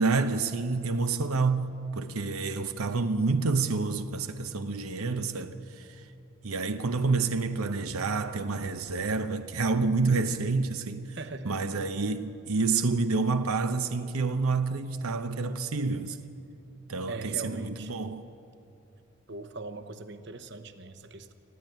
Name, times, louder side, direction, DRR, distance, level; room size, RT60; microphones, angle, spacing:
voice 1, 0.0-6.0 6.4-11.2 11.4-16.2 16.9-18.2, right 4 dB, 90° right, 0.8 m, -28 dB
voice 2, 5.0-5.6 11.2-11.8 17.1-18.1 19.3-21.3, right 2 dB, 55° right, 1.0 m, -41 dB
21.0 x 14.5 x 9.1 m
head